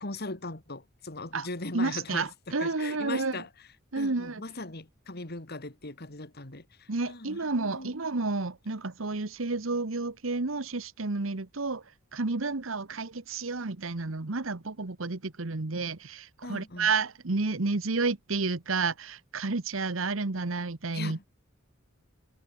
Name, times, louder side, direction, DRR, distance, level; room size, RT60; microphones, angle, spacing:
voice 1, 0.0-3.5 3.9-8.0 16.4-16.9 20.9-21.2, left 2 dB, 50° left, 2.6 m, -39 dB
voice 2, 1.7-3.4 3.9-4.4 6.9-21.2, right 3 dB, 75° right, 1.2 m, -31 dB
head